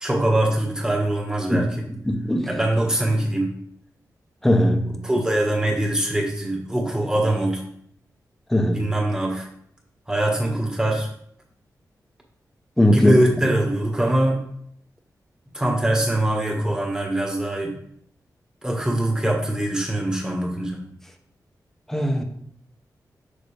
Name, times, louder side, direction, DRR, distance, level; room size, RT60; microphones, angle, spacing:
voice 1, 0.0-1.7 2.5-3.5 5.0-7.6 8.7-9.5 10.1-11.1 12.9-14.4 15.5-17.8 18.6-20.8, right 1 dB, 10° right, -1 dB, 1.6 m, -23 dB
voice 2, 2.0-2.5 4.4-4.9 8.5-8.9 12.8-13.1 21.9-22.2, left 1 dB, 5° left, 4 dB, 0.9 m, -19 dB
6.6 x 6.5 x 3.4 m, 0.68 s
wide cardioid pair, 150°, 6 cm